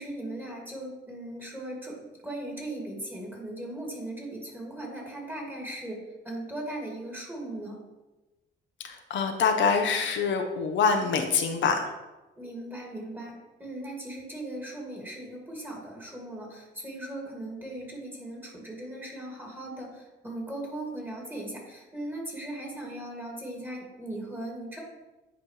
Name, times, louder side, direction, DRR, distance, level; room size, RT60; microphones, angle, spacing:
voice 1, 0.0-2.0 2.2-7.8 12.4-24.8, right 1 dB, 10° right, -2 dB, 2.2 m, -38 dB
voice 2, 8.8-11.9, left 5 dB, 70° left, 4 dB, 0.8 m, -25 dB
10.0 x 4.2 x 3.2 m, 1.1 s
cardioid pair, 90°, 20 cm